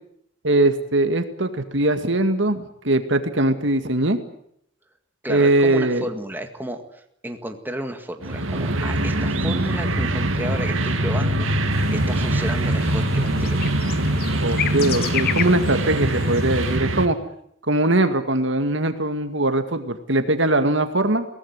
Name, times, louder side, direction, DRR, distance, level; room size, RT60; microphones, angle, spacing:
voice 1, 0.4-4.2 5.3-6.1 14.4-17.2 17.7-21.3, right 2 dB, 65° right, 8 dB, 2.1 m, -21 dB
voice 2, 5.2-13.7, right 1 dB, 10° right, 5 dB, 2.0 m, -32 dB
sound 1, 8.2-17.1, right 1 dB, 90° right, 2.5 m, -23 dB
sound 2, 11.7-16.8, left 9 dB, 50° left, 1.3 m, -32 dB
22.5 x 18.0 x 9.6 m, 0.71 s
head